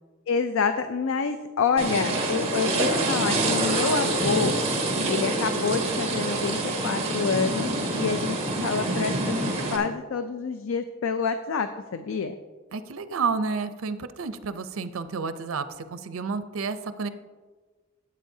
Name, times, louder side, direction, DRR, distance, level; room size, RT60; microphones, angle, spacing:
voice 1, 0.3-4.6 5.1-7.7 8.0-12.3, left 5 dB, 75° left, 9 dB, 0.4 m, -27 dB
sound 1, 1.8-9.8, right 2 dB, 30° right, 1.6 m, -26 dB
voice 2, 12.7-17.1, right 5 dB, 85° right, 11 dB, 0.5 m, -30 dB
12.5 x 8.4 x 2.7 m, 1.4 s
head